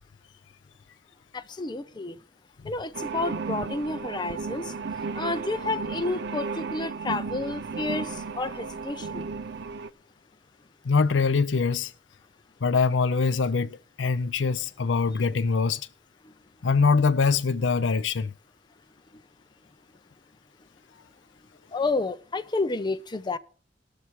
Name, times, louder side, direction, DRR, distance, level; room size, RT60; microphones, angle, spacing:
voice 1, 1.3-2.2 2.6-4.7 5.1-9.3 21.7-23.4, left 3 dB, 25° left, 0.5 m, -30 dB
sound 1, 2.9-9.9, right 4 dB, 65° right, 0.6 m, -34 dB
voice 2, 10.8-11.9 12.6-15.9 16.6-18.3, left 4 dB, 70° left, 0.5 m, -23 dB
18.5 x 6.9 x 4.6 m
head